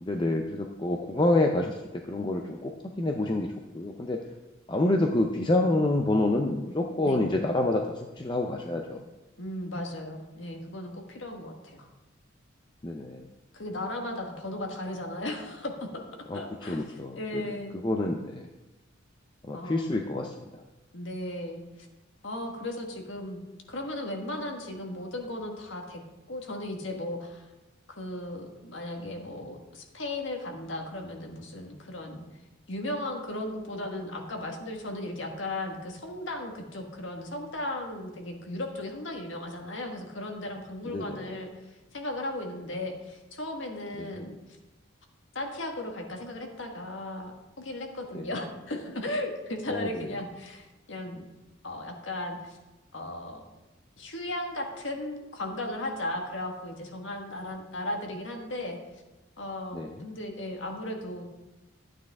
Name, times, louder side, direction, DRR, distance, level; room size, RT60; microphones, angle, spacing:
voice 1, 0.0-2.7 3.0-4.2 4.7-9.0 12.8-13.2 16.3-16.4 16.7-17.4 17.8-18.5 19.4-20.5 40.8-41.3 44.0-44.1 48.1-48.3 49.7-50.1 59.7-60.0, left 2 dB, 25° left, 2 dB, 0.5 m, -28 dB
voice 2, 9.4-11.9 13.5-16.0 16.3-16.9 17.1-17.8 19.5-19.9 20.9-21.9 22.2-23.4 23.7-26.0 26.3-27.5 27.9-32.2 32.7-44.4 45.4-51.3 51.6-52.6 52.9-53.4 54.0-58.8 59.4-61.3, left 1 dB, 65° left, 2 dB, 1.6 m, -36 dB
12.0 x 9.1 x 3.6 m, 1.1 s
head